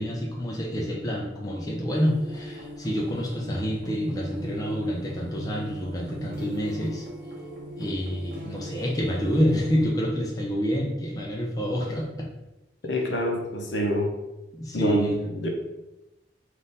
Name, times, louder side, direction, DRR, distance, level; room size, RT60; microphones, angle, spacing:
voice 1, 0.0-7.1 7.8-12.3 14.5-15.1, equal, 20° left, -2 dB, 0.5 m, -27 dB
sound 1, 1.9-9.8, right 1 dB, 50° right, 0.9 m, -39 dB
voice 2, 12.8-14.1 14.7-15.5, equal, 70° left, 2 dB, 0.7 m, -27 dB
3.6 x 2.5 x 4.0 m, 0.98 s
head